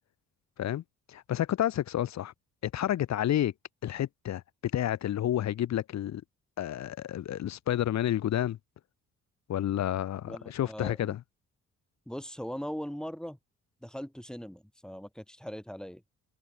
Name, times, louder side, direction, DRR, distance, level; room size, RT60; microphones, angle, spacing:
voice 1, 1.1-2.3 2.6-3.5 3.8-4.4 4.7-6.2 6.6-8.6 9.5-11.2, left 11 dB, 65° left, 1.2 m, -30 dB
voice 2, 10.3-11.2 12.1-13.4 13.8-16.0, equal, ahead, 3.5 m, -40 dB
cardioid pair, 90°, 30 cm